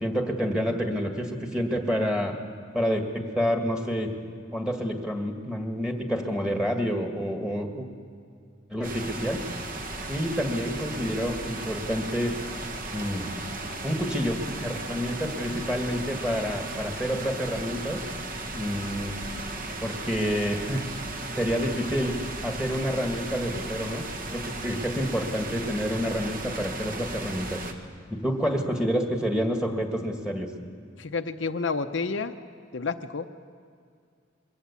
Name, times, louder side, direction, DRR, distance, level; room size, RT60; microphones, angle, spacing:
voice 1, 0.0-2.3 2.7-4.1 4.5-7.9 8.7-9.4 10.1-12.3 12.9-13.3 13.8-18.0 18.5-19.2 19.8-20.9 21.4-22.2 22.4-24.0 24.3-27.6 28.1-30.5, equal, 5° right, 3 dB, 1.9 m, -28 dB
sound 1, 8.8-27.7, right 2 dB, 45° right, 1.4 m, -36 dB
voice 2, 31.0-32.3 32.7-33.3, left 4 dB, 65° left, 7 dB, 0.7 m, -29 dB
22.5 x 15.5 x 8.4 m, 2.2 s
head